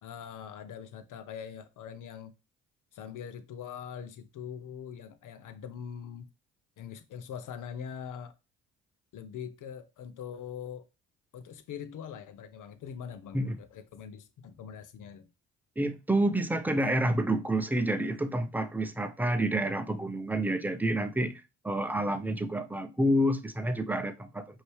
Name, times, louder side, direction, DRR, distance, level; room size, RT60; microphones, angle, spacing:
voice 1, 0.0-2.3 2.9-6.3 6.8-8.3 9.1-10.9 11.3-15.3, left 8 dB, 55° left, 0.8 m, -42 dB
voice 2, 15.8-24.5, right 1 dB, 5° right, 0.7 m, -29 dB
5.2 x 2.9 x 3.2 m
supercardioid pair, 60°, 36 cm